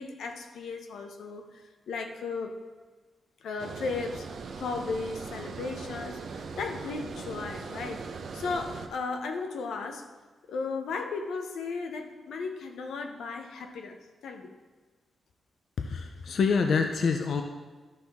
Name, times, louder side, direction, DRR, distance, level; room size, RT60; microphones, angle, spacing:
voice 1, 0.0-2.5 3.4-4.3 4.5-8.0 8.3-10.0 10.5-14.0 14.2-14.5, left 4 dB, 90° left, 5 dB, 0.8 m, -35 dB
Water, 3.6-8.9, right 5 dB, 60° right, 0.7 m, -40 dB
voice 2, 15.8-17.4, left 5 dB, 60° left, 5 dB, 0.5 m, -26 dB
12.0 x 6.0 x 3.5 m, 1.3 s
wide cardioid pair, 155°, 0 cm